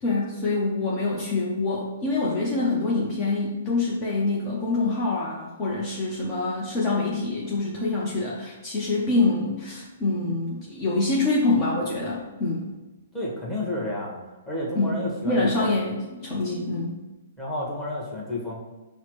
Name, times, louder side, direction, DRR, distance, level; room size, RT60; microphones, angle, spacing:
voice 1, 0.0-12.7 14.7-15.0 15.2-16.9, left 3 dB, 30° left, -5 dB, 0.7 m, -25 dB
voice 2, 13.1-14.2 14.5-15.7 17.4-18.6, left 1 dB, 5° left, -6 dB, 1.1 m, -31 dB
5.6 x 2.1 x 3.0 m, 1.1 s
figure-of-eight pair, 120°, 0 cm